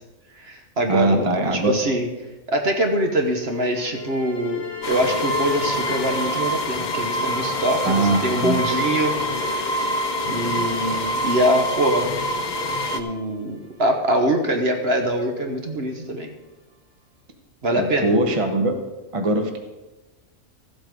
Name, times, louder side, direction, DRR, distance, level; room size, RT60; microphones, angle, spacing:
voice 1, 0.4-2.1 2.5-9.7 10.3-12.2 12.9-16.3 17.6-18.1, right 1 dB, 50° right, 4 dB, 1.3 m, -23 dB
voice 2, 0.9-1.7 7.9-8.6 17.7-18.7 19.1-19.6, right 2 dB, 25° right, 5 dB, 1.1 m, -21 dB
sound 1, 2.8-11.3 12.1-15.4, left 4 dB, 20° left, 1.4 m, -39 dB
sound 2, 4.8-13.0, equal, 40° left, 0.8 m, -25 dB
14.0 x 7.9 x 5.3 m, 1.1 s
omnidirectional pair, 1.4 m